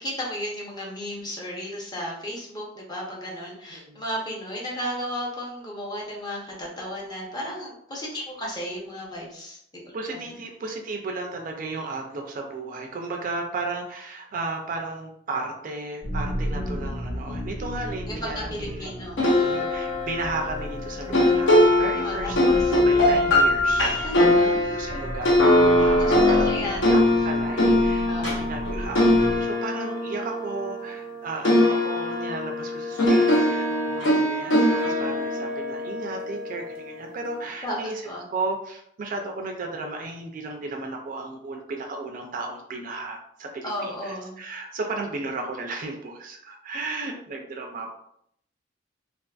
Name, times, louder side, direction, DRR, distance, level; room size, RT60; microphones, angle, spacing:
voice 1, 0.0-9.9 18.1-19.6 22.0-22.8 24.0-24.8 26.0-26.9 28.1-28.4 37.6-38.2 43.6-44.4, equal, 20° left, -3 dB, 0.6 m, -34 dB
voice 2, 3.7-4.0 9.9-18.9 19.2-22.4 22.7-24.5 24.7-26.5 26.8-38.0 38.3-47.9, right 3 dB, 45° right, 2 dB, 0.4 m, -34 dB
sound 1, 16.0-29.4, equal, 65° left, 1.1 m, -35 dB
sound 2, 19.2-31.1 31.4-36.7, left 1 dB, 85° left, 0.7 m, -21 dB
2.5 x 2.4 x 2.3 m, 0.71 s
head